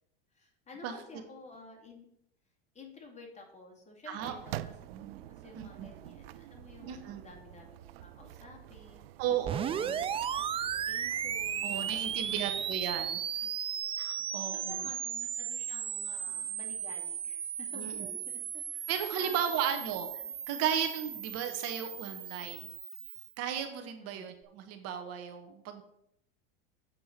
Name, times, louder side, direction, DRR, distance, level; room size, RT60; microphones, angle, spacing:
voice 1, 0.3-2.1 2.7-4.7 5.4-9.1 9.6-12.4 12.9-13.0 13.4-18.9 19.1-19.8 20.2-20.3 24.0-24.3, left 3 dB, 25° left, 1 dB, 2.3 m, -52 dB
sound 1, 4.2-13.1, right 14 dB, 85° right, 0.5 m, -48 dB
voice 2, 5.5-5.9 6.8-7.2 9.2-9.9 11.6-13.2 14.0-14.8 17.7-18.1 18.9-20.1 20.5-22.7 23.4-25.8, right 9 dB, 55° right, 7 dB, 1.2 m, -35 dB
sound 2, 9.4-23.3, right 8 dB, 20° right, 0.4 m, -36 dB
7.6 x 4.5 x 6.6 m, 0.76 s
supercardioid pair, 115°, 29 cm